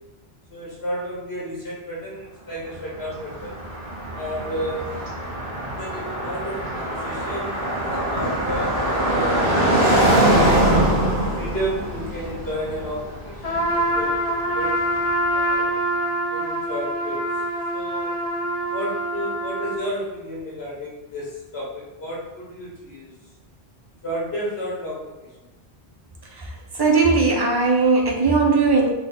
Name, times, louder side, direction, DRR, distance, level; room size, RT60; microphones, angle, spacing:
voice 1, 0.5-3.5 4.1-5.1 5.8-9.5 11.3-15.0 15.3-15.8 16.3-17.2 17.7-18.1 18.7-23.1 24.0-25.3, equal, 80° left, -5 dB, 1.5 m, -32 dB
Car passing by, 2.7-14.7, right 1 dB, 60° right, 1.2 m, -23 dB
Trumpet, 13.4-19.9, right 1 dB, 45° left, 0.6 m, -25 dB
voice 2, 26.3-28.9, right 4 dB, 30° right, 0 dB, 0.5 m, -19 dB
3.9 x 3.1 x 3.8 m, 1.0 s
omnidirectional pair, 1.1 m